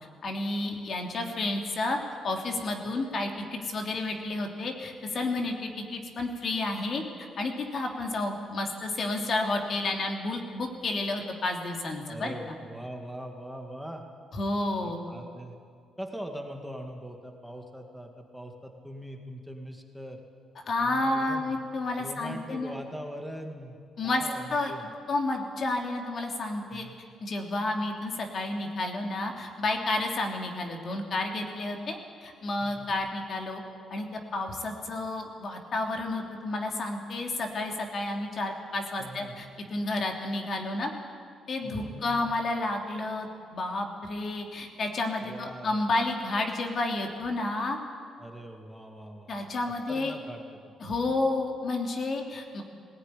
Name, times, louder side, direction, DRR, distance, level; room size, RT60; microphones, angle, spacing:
voice 1, 0.2-2.0 2.2-12.3 14.3-15.0 20.6-22.7 24.0-24.2 24.5-24.7 25.1-26.9 27.2-33.6 33.9-40.9 41.5-47.8 49.3-50.1 50.8-52.6, left 2 dB, 50° left, 2 dB, 2.9 m, -31 dB
voice 2, 12.1-14.0 14.8-15.5 16.0-20.2 20.8-21.6 22.0-23.8 24.0-24.9 26.7-26.9 32.6-32.9 39.0-39.4 41.6-42.3 45.2-45.8 48.2-49.5 49.9-50.8, equal, ahead, 3 dB, 2.1 m, -42 dB
19.0 x 16.0 x 10.0 m, 2.2 s
cardioid pair, 90°, 0 cm